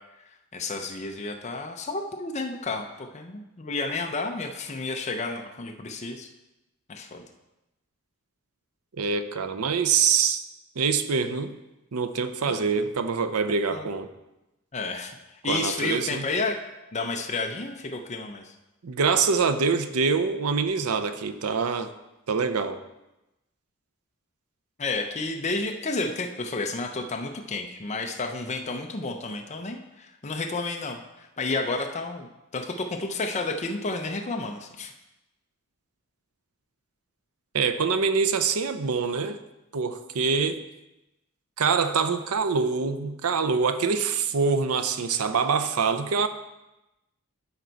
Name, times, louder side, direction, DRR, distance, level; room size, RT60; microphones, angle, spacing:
voice 1, 0.5-6.3 6.9-7.2 12.4-12.7 13.7-13.9 14.7-15.1 15.4-16.6 16.9-18.5 24.8-32.3 32.5-34.9, left 3 dB, 30° left, 3 dB, 0.6 m, -31 dB
voice 2, 9.0-10.4 10.8-11.6 11.9-14.1 15.5-16.3 18.8-21.9 22.3-22.8 37.5-39.4 39.7-40.6 41.6-46.3, right 5 dB, 85° right, 10 dB, 0.6 m, -25 dB
12.0 x 4.5 x 4.0 m, 0.97 s
head